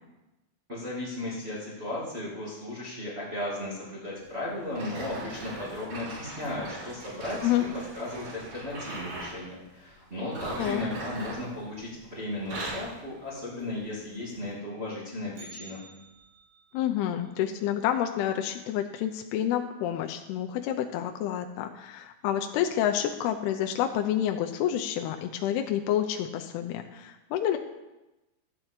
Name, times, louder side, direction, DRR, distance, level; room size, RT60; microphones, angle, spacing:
voice 1, 0.7-7.7 7.9-15.8, left 1 dB, 25° right, -8 dB, 1.4 m, -35 dB
sound 1, 4.7-9.4 10.2-12.0 12.3-13.0 13.6-13.8 14.4-14.5, right 2 dB, 55° right, 4.0 m, -40 dB
Bell, 15.4-19.4 19.7-19.8 20.3-20.4 21.2-21.3 22.1-22.3 22.7-22.8, right 2 dB, 85° right, 6.1 m, -54 dB
voice 2, 16.7-27.6, left 11 dB, 85° left, 4 dB, 2.3 m, -29 dB
12.5 x 8.1 x 4.4 m, 1.0 s
omnidirectional pair, 5.2 m